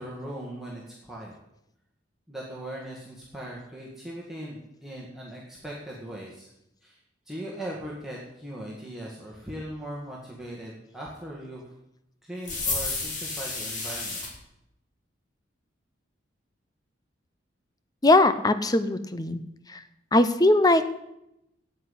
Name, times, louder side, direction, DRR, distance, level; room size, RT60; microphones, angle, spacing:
voice 1, 0.0-1.4 2.3-6.5 6.8-7.0 7.3-11.7 12.2-14.2, right 1 dB, ahead, -5 dB, 1.9 m, -39 dB
sound 1, 12.4-14.3, left 3 dB, 40° left, 2.9 m, -31 dB
voice 2, 18.0-19.4 19.7-19.8 20.1-20.9, left 2 dB, 20° left, 12 dB, 0.7 m, -20 dB
9.3 x 8.3 x 9.6 m, 0.84 s
head